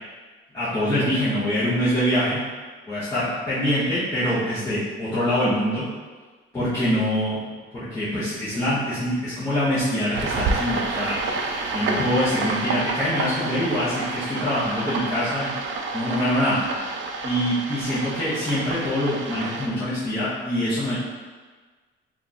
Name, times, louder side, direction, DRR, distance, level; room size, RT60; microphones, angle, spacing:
voice 1, 0.5-2.4 2.9-5.8 6.5-7.4 7.7-11.2 11.6-15.5 15.9-16.6 17.2-21.0, equal, 15° left, -13 dB, 0.8 m, -24 dB
sound 1, 10.1-19.7, right 3 dB, 65° right, 0.4 m, -29 dB
3.0 x 2.3 x 3.9 m, 1.4 s
cardioid pair, 160°, 21 cm